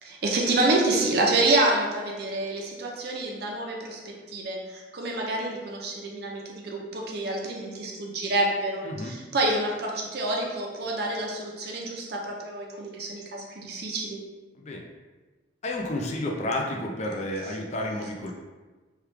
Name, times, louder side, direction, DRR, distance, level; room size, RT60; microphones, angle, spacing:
voice 1, 0.0-14.2, right 2 dB, 60° right, -1 dB, 0.6 m, -28 dB
voice 2, 8.8-9.1 14.6-14.8 15.6-18.3, left 1 dB, 40° left, 1 dB, 0.4 m, -31 dB
3.1 x 2.3 x 3.2 m, 1.3 s
head